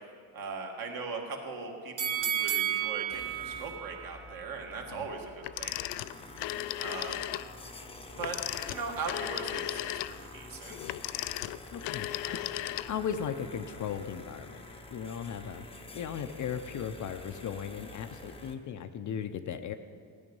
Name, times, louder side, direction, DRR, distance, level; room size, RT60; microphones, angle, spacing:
voice 1, 0.3-5.3 5.6-5.8 6.8-7.2 8.2-10.8 12.2-12.4, right 4 dB, 50° right, 1 dB, 2.0 m, -39 dB
sound 1, 2.0-5.1 5.5-5.6, right 11 dB, 35° right, 1.2 m, -33 dB
sound 2, 3.1-18.5, left 2 dB, 15° left, 0.8 m, -48 dB
Telephone, 5.4-7.5 8.2-13.2, left 15 dB, 85° left, 0.5 m, -36 dB
voice 2, 11.7-12.4 12.9-14.6 14.9-19.7, left 8 dB, 45° left, 9 dB, 0.6 m, -37 dB
15.5 x 9.7 x 5.4 m, 2.1 s
cardioid pair, 140°, 43 cm